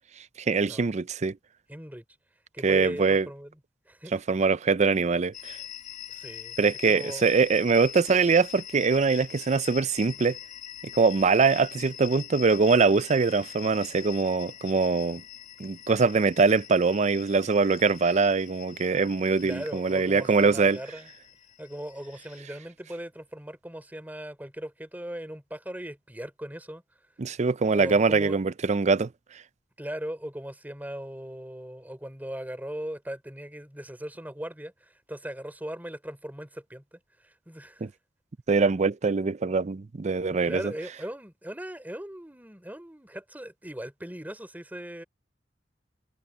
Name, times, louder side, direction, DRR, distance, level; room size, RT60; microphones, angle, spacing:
voice 1, 0.4-1.4 2.6-3.3 4.1-5.6 6.6-10.4 10.9-15.2 15.6-20.8 27.2-29.1 37.8-37.9 38.5-40.7, right 4 dB, 40° right, 0.5 m, -23 dB
voice 2, 1.7-2.0 2.5-3.6 3.8-4.1 6.1-6.5 6.9-7.2 19.4-21.1 21.6-26.8 27.7-28.4 29.8-37.9 40.3-45.0, right 1 dB, 10° right, 3.4 m, -39 dB
sound 1, 5.3-22.4, left 11 dB, 45° left, 2.2 m, -44 dB
head